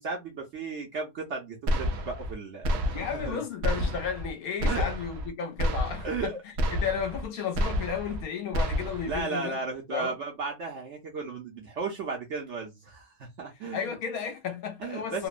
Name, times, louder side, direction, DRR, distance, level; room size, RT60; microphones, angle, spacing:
voice 1, 0.0-3.4 4.6-4.9 6.0-6.4 9.0-13.9 14.8-15.3, right 4 dB, 60° right, 0.8 m, -35 dB
sound 1, 1.7-2.3 2.6-3.3 3.6-4.3 4.6-5.3 5.6-6.3 6.6-7.3 7.6-8.2 8.5-9.2, equal, 85° right, 0.5 m, -29 dB
voice 2, 2.9-6.3 6.7-9.6 9.9-10.1 13.7-15.3, left 7 dB, 70° left, 1.0 m, -33 dB
2.9 x 2.1 x 2.3 m
omnidirectional pair, 1.7 m